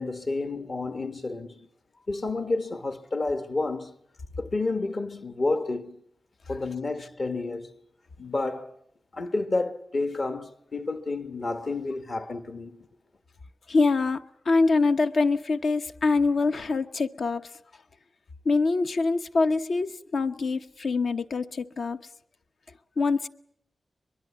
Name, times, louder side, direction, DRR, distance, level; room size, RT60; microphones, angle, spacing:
voice 1, 0.0-1.7 2.1-4.0 4.4-6.0 6.5-7.7 8.2-8.8 9.1-12.8, left 3 dB, 50° left, 1.3 m, -30 dB
voice 2, 13.7-17.5 18.4-22.0 23.0-23.3, left 3 dB, 70° left, 1.0 m, -24 dB
22.5 x 22.5 x 8.4 m
wide cardioid pair, 130°, 0 cm